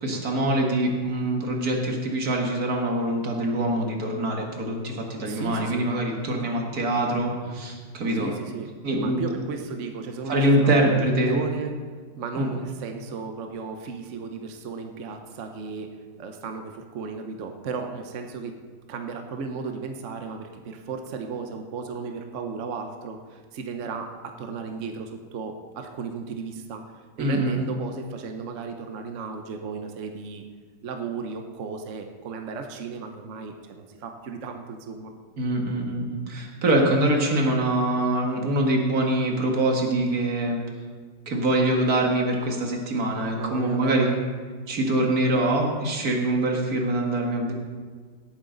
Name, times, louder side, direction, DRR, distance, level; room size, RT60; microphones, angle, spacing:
voice 1, 0.0-8.3 8.8-9.3 10.3-11.4 12.4-12.5 27.2-27.6 35.4-40.6 41.3-44.1 44.7-47.5, right 1 dB, 45° right, 1 dB, 2.0 m, -24 dB
voice 2, 5.2-5.9 8.1-11.7 12.2-18.5 18.9-26.8 27.2-30.4 30.8-35.1 43.3-44.2, right 5 dB, 60° right, 5 dB, 0.7 m, -35 dB
18.0 x 9.0 x 3.9 m, 1.6 s
omnidirectional pair, 2.4 m